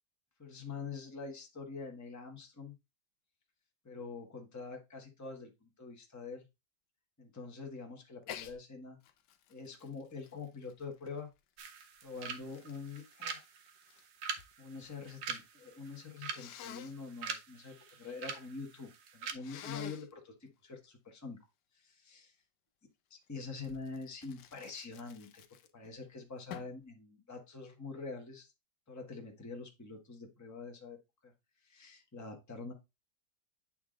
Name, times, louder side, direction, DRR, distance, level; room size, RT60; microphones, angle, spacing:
voice 1, 0.4-2.7 3.8-6.4 7.2-9.0 9.5-11.3 12.0-13.4 14.6-21.4 21.7-22.3 23.1-25.4 25.7-28.5 28.9-31.0 31.2-31.3 31.6-32.7, left 4 dB, 10° left, 1 dB, 1.0 m, -45 dB
Sneeze, 8.2-8.6 9.0-11.4 12.1-14.5 14.8-15.4 16.3-16.9 19.4-20.1 23.6-25.9 26.5-26.8, left 10 dB, 70° left, 1.1 m, -49 dB
sound 1, 11.6-19.3, right 6 dB, 65° right, 1.3 m, -45 dB
8.6 x 3.4 x 3.8 m, 0.24 s
omnidirectional pair, 2.1 m